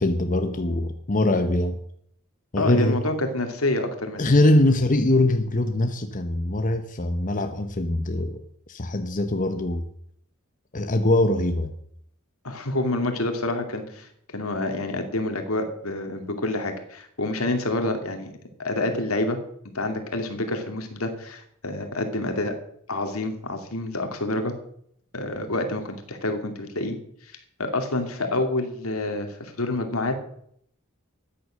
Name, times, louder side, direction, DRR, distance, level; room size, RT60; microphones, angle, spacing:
voice 1, 0.0-1.8 2.5-3.1 4.2-8.4 8.7-9.8 10.7-11.7, left 1 dB, 40° left, 1.0 m, -22 dB
voice 2, 2.6-4.2 12.4-18.3 18.6-19.4 19.7-22.6 22.9-24.5 25.1-27.0 27.2-27.3 27.6-30.2, left 2 dB, 80° left, 2.5 m, -28 dB
14.0 x 9.6 x 6.3 m
head